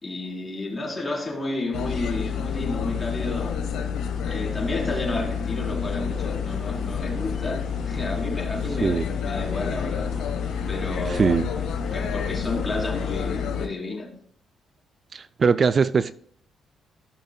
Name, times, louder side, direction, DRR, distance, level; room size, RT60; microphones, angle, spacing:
voice 1, 0.0-3.6 4.2-10.1 10.7-11.4 11.9-14.1, left 2 dB, 25° left, 3.8 m, -31 dB
sound 1, 1.7-13.7, left 6 dB, 80° left, 1.5 m, -29 dB
sound 2, 5.5-13.6, left 2 dB, 5° left, 1.3 m, -42 dB
voice 2, 11.0-11.5 15.1-16.1, right 5 dB, 40° right, 0.3 m, -21 dB
15.5 x 6.5 x 2.3 m
cardioid pair, 90°, 0 cm